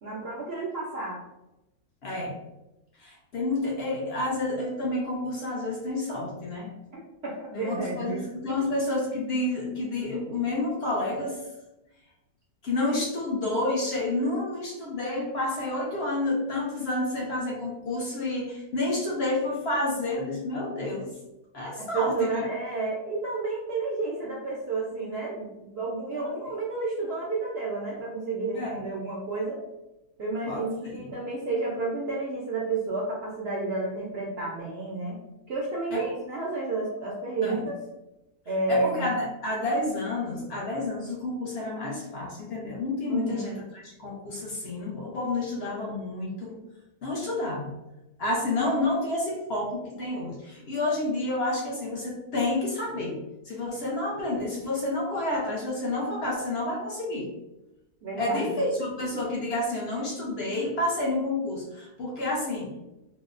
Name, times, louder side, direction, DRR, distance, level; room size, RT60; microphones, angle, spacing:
voice 1, 0.0-1.2 6.9-8.3 21.8-29.6 30.2-35.2 35.5-37.8 38.5-39.1 43.1-43.5 58.0-58.4, right 3 dB, 70° right, -5 dB, 0.6 m, -31 dB
voice 2, 2.0-2.4 3.0-6.7 7.5-11.4 12.6-21.1 21.5-22.4 26.1-26.2 28.5-28.8 30.5-31.0 35.9-36.0 37.4-37.6 38.7-46.6 47.0-47.7 48.2-53.2 53.4-57.3 58.2-62.7, left 2 dB, 65° left, -2 dB, 0.6 m, -29 dB
3.9 x 2.0 x 2.4 m, 0.95 s
omnidirectional pair, 1.7 m